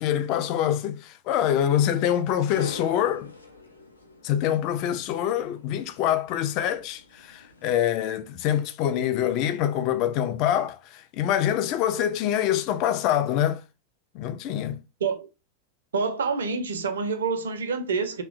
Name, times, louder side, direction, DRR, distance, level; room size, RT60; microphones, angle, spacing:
voice 1, 0.0-3.3 4.2-13.6 14.1-14.8, left 10 dB, 40° left, 0.4 m, -25 dB
sound 1, 2.1-7.9, left 2 dB, 80° left, 0.6 m, -45 dB
voice 2, 15.9-18.2, right 5 dB, 65° right, 0.5 m, -27 dB
3.0 x 2.1 x 2.5 m
figure-of-eight pair, 90°, 0 cm